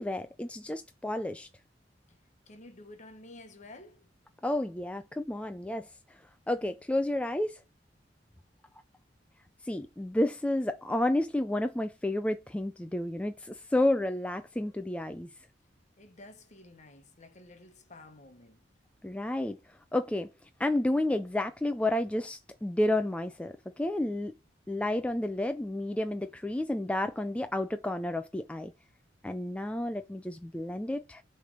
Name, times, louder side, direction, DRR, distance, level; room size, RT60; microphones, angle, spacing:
voice 1, 0.0-1.5 4.4-5.9 6.5-7.6 9.6-15.3 19.0-19.6 19.9-20.3 20.6-24.4 24.7-28.7 29.2-31.2, left 1 dB, 5° left, 0.3 m, -31 dB
voice 2, 2.5-4.1 16.0-18.6, left 2 dB, 40° left, 1.1 m, -51 dB
6.6 x 3.3 x 5.2 m
head